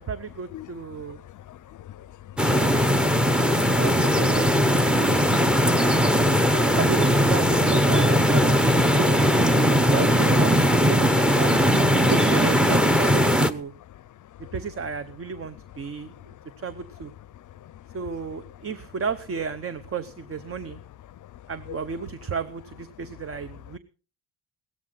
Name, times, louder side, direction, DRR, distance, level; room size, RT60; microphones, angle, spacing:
voice 1, 0.0-1.2 2.6-5.1 6.5-9.2 9.8-11.8 12.1-13.7 14.4-16.1 16.6-17.1 17.9-20.8 21.5-23.8, right 5 dB, 35° right, 0.9 m, -33 dB
voice 2, 1.2-2.6 14.4-14.5 17.6-17.7 21.3-21.4, left 12 dB, 45° left, 0.6 m, -44 dB
sound 1, 2.4-13.5, equal, ahead, 0.8 m, -19 dB
17.0 x 13.5 x 4.1 m
cardioid pair, 115°, 42 cm